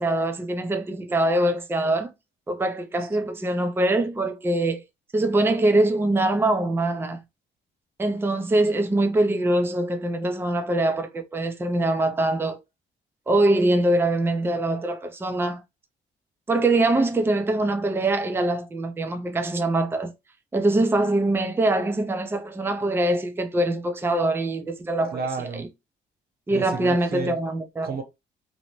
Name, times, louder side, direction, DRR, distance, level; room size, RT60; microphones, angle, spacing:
voice 1, 0.0-2.1 2.5-4.8 5.1-7.2 8.0-12.6 13.3-15.6 16.5-20.1 20.5-25.2 26.5-28.0, right 2 dB, 10° right, 0.4 m, -23 dB
voice 2, 25.1-25.7 26.5-27.4 27.8-28.0, right 4 dB, 50° right, 0.7 m, -31 dB
2.6 x 2.1 x 3.0 m
cardioid pair, 90°, 20 cm